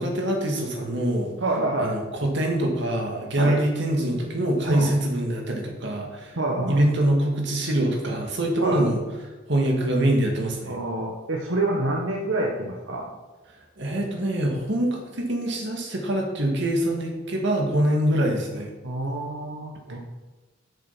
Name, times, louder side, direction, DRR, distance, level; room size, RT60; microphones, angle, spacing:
voice 1, 0.0-1.3 1.8-6.4 6.7-9.0 9.5-10.8 13.8-18.7, right 1 dB, 65° right, 1 dB, 2.1 m, -24 dB
voice 2, 1.4-1.9 3.4-3.6 4.7-4.9 6.4-6.8 8.6-8.8 10.7-13.1 18.8-20.0, right 2 dB, 90° right, -1 dB, 1.2 m, -27 dB
7.5 x 7.5 x 6.0 m, 1.2 s
head